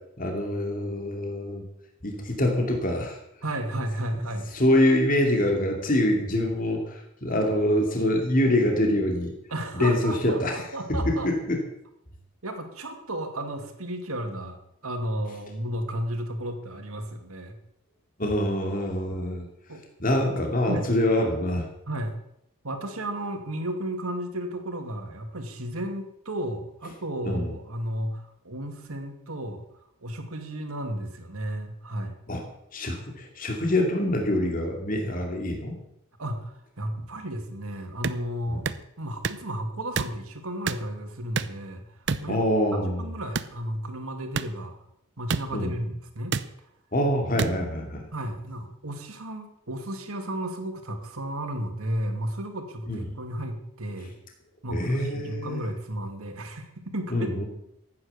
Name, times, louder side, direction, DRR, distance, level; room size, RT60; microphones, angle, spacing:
voice 1, 0.2-1.6 2.0-3.2 4.5-9.3 9.7-10.6 11.1-11.6 18.2-19.5 20.0-21.7 27.2-27.5 32.3-32.4 32.7-35.8 42.3-43.0 45.5-45.7 46.9-48.1 52.9-53.0 54.7-55.7 57.1-57.4, left 1 dB, 40° left, 2 dB, 2.5 m, -25 dB
voice 2, 3.4-4.5 9.5-11.3 12.4-14.6 14.8-17.6 19.7-19.8 20.3-20.4 20.6-20.9 21.9-22.1 22.6-29.6 30.0-32.2 36.2-38.6 39.0-41.9 42.2-42.4 42.7-44.8 45.2-46.3 47.3-47.8 48.1-54.1 54.6-57.4, right 1 dB, 75° right, 5 dB, 2.4 m, -33 dB
sound 1, 38.0-38.2 38.6-38.8 39.2-39.4 40.0-40.1 40.7-40.8 41.4-41.6 42.1-42.3 43.3-43.5 44.4-44.5 45.3-45.4 46.3-46.5 47.4-47.5, right 5 dB, 50° right, 0.6 m, -27 dB
15.0 x 9.5 x 6.8 m, 0.78 s
head